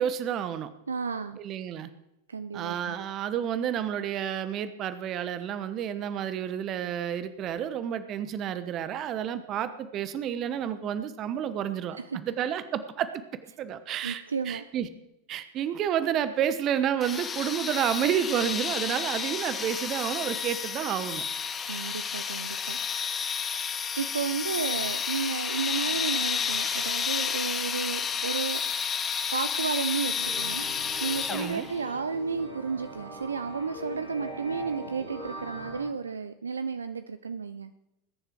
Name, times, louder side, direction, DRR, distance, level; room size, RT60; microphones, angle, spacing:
voice 1, 0.0-0.7 1.4-1.9 2.5-13.2 13.6-14.9 15.3-21.2 31.3-31.7, right 9 dB, 35° right, 13 dB, 1.1 m, -30 dB
voice 2, 0.9-1.4 2.3-3.0 14.0-14.6 21.6-22.8 24.0-28.6 29.3-30.6 31.0-37.7, right 5 dB, 75° right, 12 dB, 0.6 m, -32 dB
sound 1, 17.0-31.8, left 6 dB, 20° left, 1.1 m, -31 dB
sound 2, 30.2-35.8, right 1 dB, 85° left, 7.0 m, -41 dB
20.5 x 10.5 x 4.6 m, 0.89 s
figure-of-eight pair, 85°, 0 cm